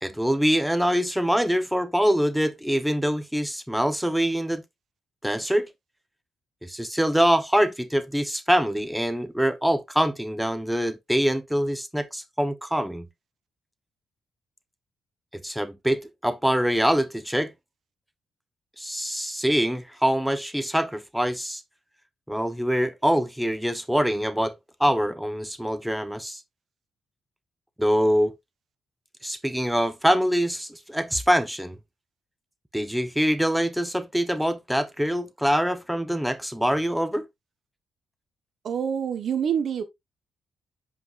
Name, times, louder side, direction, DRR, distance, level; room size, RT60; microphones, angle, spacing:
voice 1, 0.0-4.6 5.2-5.7 6.6-13.1 15.3-17.5 18.8-21.6 22.3-24.5 24.8-26.4 27.8-28.3 29.2-31.8 32.7-37.2, equal, 5° right, 0.9 m, -24 dB
voice 2, 38.6-39.8, right 8 dB, 65° right, 1.2 m, -26 dB
9.1 x 5.4 x 2.5 m
supercardioid pair, 55°, 0 cm